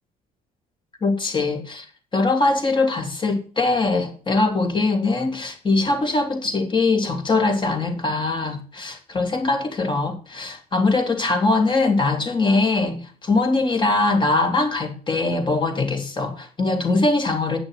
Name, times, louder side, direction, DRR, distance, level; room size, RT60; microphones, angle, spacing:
voice 1, 1.0-1.8 2.1-17.6, left 3 dB, 30° left, 2.9 m, -22 dB
9.2 x 6.2 x 6.4 m
cardioid pair, 110°, 17 cm